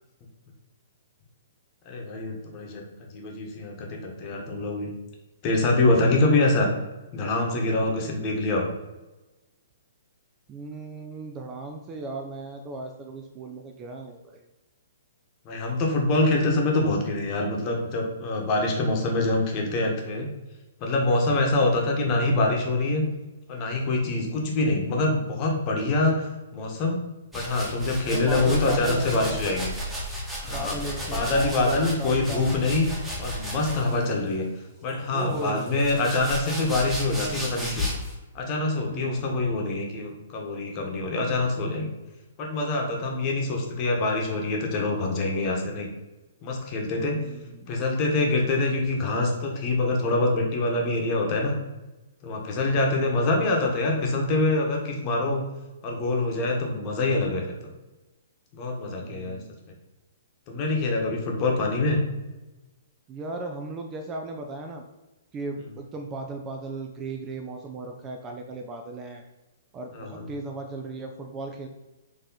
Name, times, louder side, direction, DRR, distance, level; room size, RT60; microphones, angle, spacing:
voice 1, 1.9-2.8 3.1-4.9 5.4-6.7 7.1-8.7 15.4-20.3 20.8-23.0 23.5-27.0 27.3-29.7 30.4-30.8 31.1-32.9 33.2-34.5 34.8-37.9 38.3-41.9 42.4-45.9 46.4-47.2 47.7-51.5 52.2-55.4 55.8-57.5 58.5-59.4 60.5-62.0 69.9-70.3, left 2 dB, 35° left, 0 dB, 1.1 m, -25 dB
voice 2, 10.5-14.4 24.1-24.5 28.1-29.6 30.4-32.5 33.7-34.1 35.1-35.8 38.9-39.3 47.2-47.7 52.6-53.0 59.0-59.6 63.1-64.8 65.3-69.2 69.7-71.7, right 2 dB, 25° right, 3 dB, 0.4 m, -36 dB
sound 1, 27.3-34.1 34.9-38.1, left 1 dB, 5° right, 1.2 m, -34 dB
4.6 x 3.0 x 3.8 m, 1.1 s
figure-of-eight pair, 120°, 0 cm